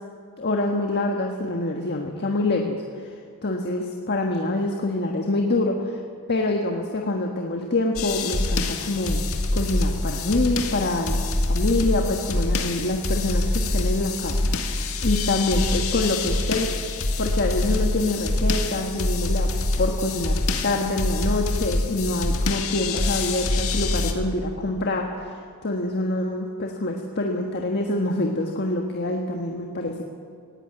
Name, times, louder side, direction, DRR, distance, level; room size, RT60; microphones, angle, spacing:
voice 1, 0.4-3.1 3.4-6.0 6.3-9.2 9.5-16.9 17.2-19.5 19.8-30.0, left 2 dB, 50° left, 2 dB, 1.5 m, -26 dB
sound 1, 8.0-24.1, left 2 dB, 70° left, 2.1 m, -25 dB
18.0 x 17.0 x 8.9 m, 2.4 s
head